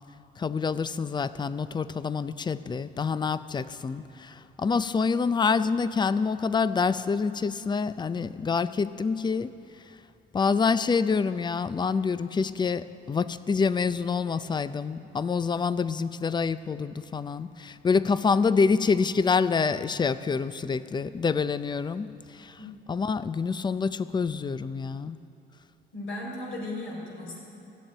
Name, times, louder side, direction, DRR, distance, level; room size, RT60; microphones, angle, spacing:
voice 1, 0.4-9.5 10.3-22.6 22.9-25.2, left 5 dB, 20° left, 14 dB, 0.4 m, -27 dB
voice 2, 25.9-27.4, left 2 dB, 75° left, -2 dB, 3.8 m, -36 dB
14.5 x 7.3 x 8.7 m, 3.0 s
cardioid pair, 90°, 20 cm